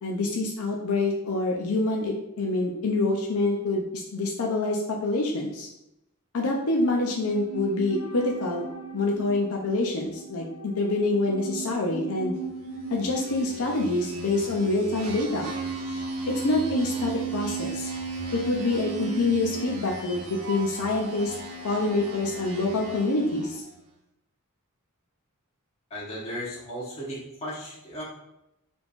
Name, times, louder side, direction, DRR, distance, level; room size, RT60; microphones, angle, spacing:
voice 1, 0.0-5.7 6.3-8.6 8.9-12.4 12.9-15.5 16.3-17.9 18.3-21.3 21.6-23.6, left 2 dB, 70° left, 0 dB, 0.6 m, -26 dB
sound 1, 6.9-16.2 16.5-16.6, right 3 dB, 90° left, 1.6 m, -39 dB
sound 2, 12.8-23.7, right 4 dB, 80° right, 1.0 m, -35 dB
voice 2, 25.9-28.0, equal, 30° left, -7 dB, 1.2 m, -36 dB
5.0 x 3.4 x 2.5 m, 0.85 s
head